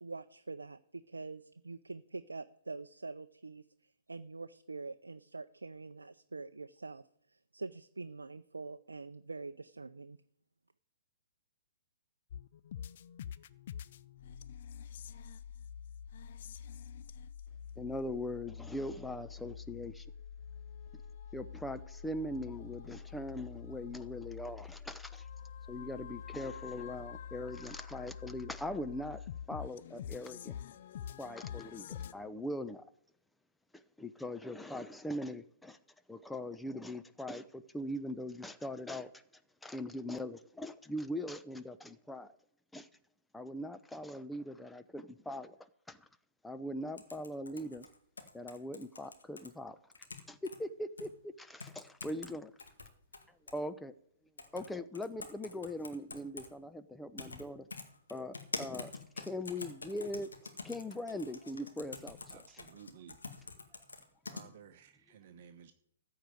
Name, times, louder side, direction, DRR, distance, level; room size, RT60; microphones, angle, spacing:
voice 1, 0.0-3.6 4.1-10.2, right 3 dB, 85° right, 9 dB, 0.5 m, -45 dB
sound 1, 12.3-32.1, left 8 dB, 55° left, 0.6 m, -47 dB
voice 2, 17.8-20.1 21.3-25.3 25.7-30.5 31.2-32.8 33.7-35.8 36.1-39.1 39.6-42.3 42.7-42.9 43.3-45.6 45.9-46.1 46.4-47.9 48.3-49.8 50.3-52.5 53.5-53.9 54.5-57.7 58.1-60.3 60.6-62.2, left 1 dB, 5° left, 11 dB, 0.7 m, -41 dB
sound 2, 47.0-49.5 49.9-50.6 51.0-51.1 51.6-52.3 52.6-53.6 54.4-54.7 54.9-56.5 57.2-57.4 57.7-64.4, left 3 dB, 80° left, 2.0 m, -45 dB
voice 3, 62.3-63.5 64.3-65.7, right 8 dB, 50° right, 7 dB, 1.0 m, -56 dB
14.0 x 4.8 x 9.2 m, 0.70 s
figure-of-eight pair, 125°, 0 cm